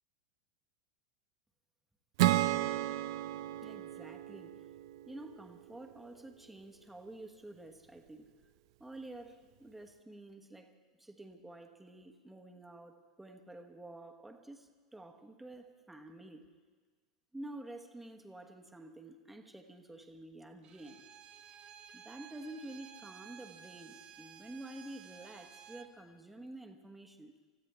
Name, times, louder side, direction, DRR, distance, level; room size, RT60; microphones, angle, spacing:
Acoustic guitar / Strum, 2.2-5.6, right 15 dB, 55° right, 0.5 m, -33 dB
voice 1, 3.6-4.7 5.1-8.3 8.8-10.7 11.0-16.5 17.3-21.0 21.9-27.3, right 1 dB, 5° right, 4 dB, 1.3 m, -49 dB
Bowed string instrument, 20.6-25.9, right 9 dB, 35° right, 1.8 m, -54 dB
26.0 x 15.0 x 3.4 m, 1.4 s
figure-of-eight pair, 85°, 3 cm